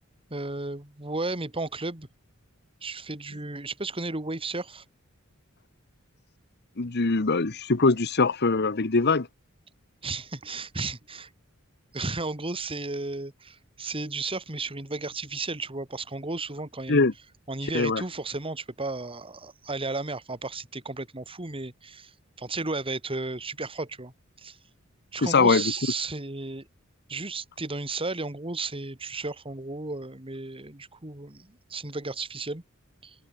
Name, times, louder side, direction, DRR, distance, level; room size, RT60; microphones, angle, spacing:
voice 1, 0.3-2.1 2.8-4.8 10.0-11.3 11.9-17.0 17.5-22.1 22.4-24.6 25.1-26.7 27.1-32.6 33.0-33.1, right 3 dB, 25° right, 2.3 m, -34 dB
voice 2, 6.8-9.3 16.9-17.1 17.7-18.0 25.2-25.7, left 3 dB, 50° left, 1.1 m, -22 dB
open air
head